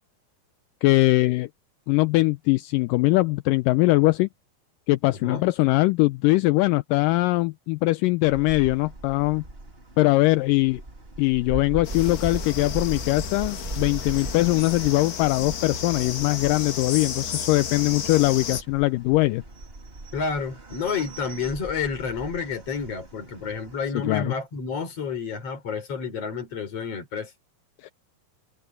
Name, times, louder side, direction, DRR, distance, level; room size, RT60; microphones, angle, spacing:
voice 1, 0.8-1.5 1.9-4.3 4.9-9.4 10.0-10.8 11.2-19.4 23.9-24.3 27.8-27.9, left 20 dB, 80° left, 2.1 m, -21 dB
sound 1, 8.2-23.9, right 2 dB, 15° right, 2.7 m, -39 dB
sound 2, 11.8-18.6, left 7 dB, 65° left, 3.9 m, -33 dB
voice 2, 20.1-27.3, left 5 dB, 40° left, 5.1 m, -30 dB
omnidirectional pair, 4.2 m